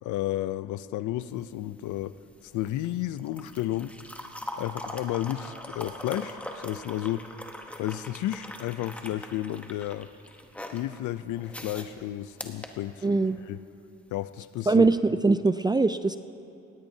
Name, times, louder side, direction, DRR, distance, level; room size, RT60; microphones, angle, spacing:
voice 1, 0.0-2.1 2.4-4.0 4.6-7.3 7.8-10.1 10.7-13.1 13.5-13.6 14.1-14.9, left 13 dB, 80° left, 15 dB, 0.5 m, -32 dB
sound 1, 1.2-13.5 14.8-14.9, left 1 dB, 5° left, 1.0 m, -42 dB
voice 2, 13.0-13.4 14.7-16.2, right 3 dB, 15° right, 11 dB, 0.3 m, -22 dB
18.0 x 17.0 x 2.8 m, 2.6 s
cardioid pair, 90°, 30 cm